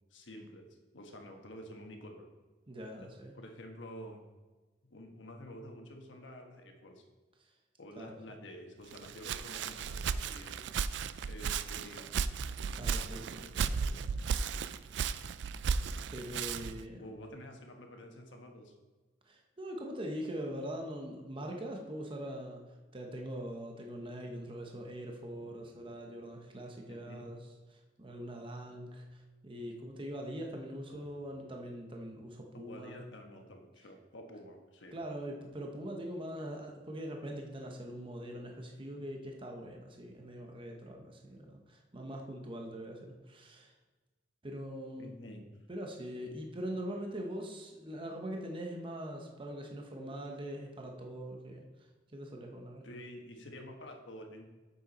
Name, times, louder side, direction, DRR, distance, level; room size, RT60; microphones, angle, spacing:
voice 1, 0.1-0.7 0.9-2.3 3.0-3.1 3.3-4.2 4.8-7.0 7.8-10.7 11.3-12.1 16.9-18.7 25.4-25.5 26.9-27.3 30.9-31.0 32.5-35.0 45.0-45.4 52.8-54.5, equal, 85° left, 3 dB, 1.2 m, -49 dB
voice 2, 2.7-3.3 7.9-8.2 12.5-14.2 16.1-17.1 19.3-22.6 22.9-27.4 27.7-33.0 34.9-43.7 44.4-45.1 45.7-51.6 52.1-52.8, equal, 30° right, 2 dB, 0.8 m, -42 dB
Walk footsteps, 8.9-16.8, right 6 dB, 65° right, 0.3 m, -35 dB
7.9 x 6.6 x 4.1 m, 1.3 s
head